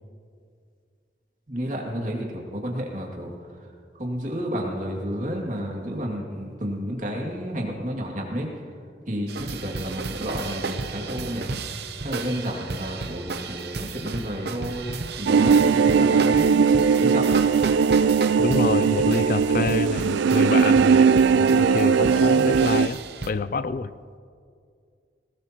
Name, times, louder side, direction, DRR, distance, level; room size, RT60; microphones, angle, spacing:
voice 1, 1.5-3.3 4.0-8.5 9.1-11.5 12.0-16.7 17.0-17.3, equal, 45° right, -1 dB, 2.4 m, -31 dB
sound 1, 9.3-23.3, right 3 dB, 65° right, 0.8 m, -34 dB
sound 2, 15.3-22.9, right 5 dB, 90° right, 0.3 m, -19 dB
voice 2, 18.4-23.0 23.3-23.9, left 4 dB, 50° left, 15 dB, 0.3 m, -27 dB
19.5 x 18.0 x 3.0 m, 2.2 s
head